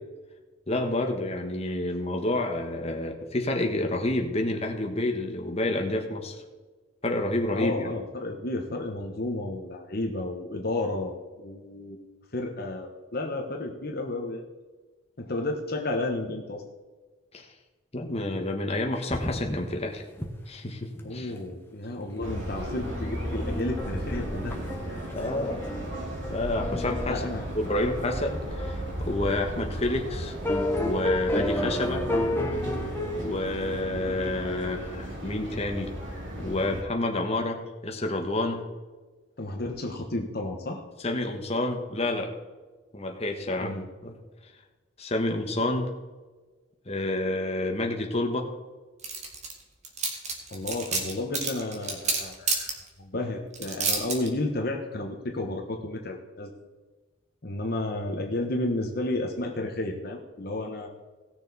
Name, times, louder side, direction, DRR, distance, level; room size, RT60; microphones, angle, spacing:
voice 1, 0.7-6.3 7.0-7.9 17.3-17.5 17.9-20.0 20.5-21.3 25.1-25.6 26.3-27.2 27.5-30.3 30.8-32.0 33.1-35.9 36.4-38.7 41.0-42.3 42.9-43.8 44.0-44.1 45.0-45.9 46.9-48.5, left 2 dB, 35° left, 2 dB, 1.4 m, -29 dB
voice 2, 7.6-12.0 12.3-14.4 15.2-16.6 21.0-24.6 27.1-27.5 39.4-40.8 43.6-43.8 50.5-52.7 53.0-56.5 57.4-60.9, left 2 dB, 55° left, 2 dB, 1.2 m, -32 dB
sound 1, 19.1-19.8 20.1-20.3 20.6-20.7 21.0-21.3 22.3-22.4 22.7-29.1 29.7-29.8 30.4-33.3, left 1 dB, 10° left, 1.2 m, -32 dB
sound 2, 22.2-36.8, equal, 75° right, 2.5 m, -35 dB
sound 3, 49.0-49.5 49.8-52.7 53.5-54.3, right 4 dB, 40° right, 2.0 m, -28 dB
18.0 x 6.8 x 4.1 m, 1.3 s
head